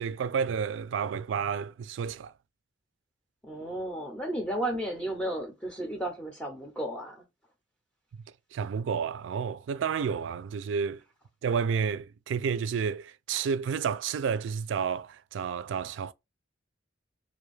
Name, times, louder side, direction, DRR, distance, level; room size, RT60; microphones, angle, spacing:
voice 1, 0.0-2.3 8.5-11.0 11.4-16.1, right 6 dB, 80° right, 0.3 m, -30 dB
voice 2, 3.4-7.2, right 1 dB, 5° left, 0.5 m, -33 dB
2.5 x 2.3 x 3.0 m
head